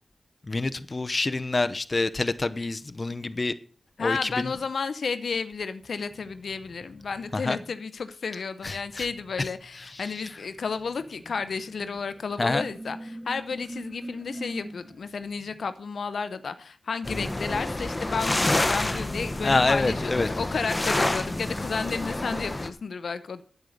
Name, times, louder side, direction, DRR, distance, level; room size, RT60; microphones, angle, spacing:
voice 1, 0.5-3.5 4.0-4.6 7.3-7.6 8.3-9.1 9.4-10.3 12.4-12.6 19.4-20.3, left 3 dB, 40° left, 0.8 m, -27 dB
voice 2, 4.0-23.4, left 5 dB, 80° left, 0.7 m, -32 dB
sound 1, 5.8-7.7 8.8-15.6 18.7-22.5, right 1 dB, 10° right, 2.0 m, -45 dB
sound 2, 17.0-22.7, left 2 dB, 25° left, 1.0 m, -28 dB
9.0 x 8.3 x 6.5 m
cardioid pair, 65°, 0 cm